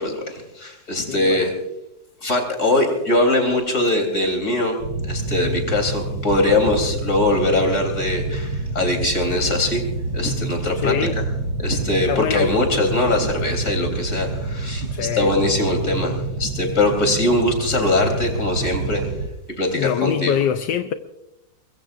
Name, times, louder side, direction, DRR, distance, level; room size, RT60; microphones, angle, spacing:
voice 1, 0.0-1.5 2.2-4.8 5.0-9.8 10.1-10.9 11.6-19.1 19.6-20.4, left 2 dB, 40° left, 3.9 m, -21 dB
voice 2, 1.1-1.5 10.7-11.2 11.9-12.9 14.8-15.4 19.7-20.9, left 9 dB, 75° left, 1.4 m, -24 dB
sound 1, 4.8-19.3, right 3 dB, 70° right, 1.7 m, -28 dB
23.5 x 22.0 x 2.6 m
omnidirectional pair, 2.0 m